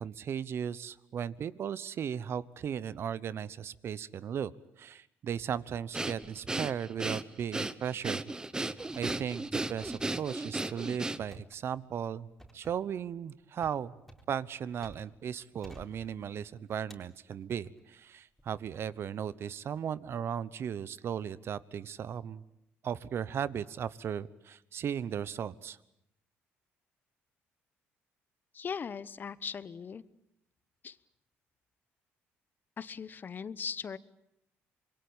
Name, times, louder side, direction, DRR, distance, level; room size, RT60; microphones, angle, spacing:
voice 1, 0.0-4.5 4.8-8.2 8.6-12.3 12.5-14.0 14.3-22.4 22.8-25.8, right 8 dB, 55° right, 18 dB, 1.0 m, -36 dB
Breathing, 5.9-11.5, right 2 dB, 15° right, 1.1 m, -35 dB
sound 1, 6.2-6.8 7.1-7.8 8.1-8.3 8.8-15.3 15.6-16.5 16.9-17.8 18.4-18.8, right 1 dB, 5° left, 4.3 m, -55 dB
voice 2, 28.5-30.0 30.8-31.0 32.8-34.0, left 6 dB, 40° left, 17 dB, 1.0 m, -39 dB
26.0 x 22.5 x 8.9 m, 0.82 s
cardioid pair, 95°, 5 cm